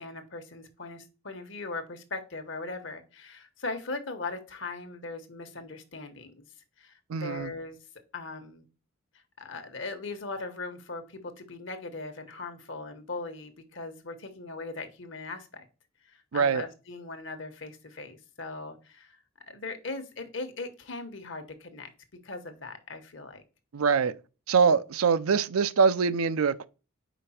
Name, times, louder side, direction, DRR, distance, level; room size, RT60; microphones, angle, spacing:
voice 1, 0.0-6.4 6.8-7.8 8.1-8.6 9.4-15.7 16.0-19.2 19.5-21.9 22.2-23.4, left 3 dB, 60° left, 1.1 m, -39 dB
voice 2, 7.1-7.5 16.3-16.6 23.7-24.1 24.5-26.7, right 5 dB, 85° right, 0.5 m, -24 dB
5.1 x 4.8 x 4.3 m
head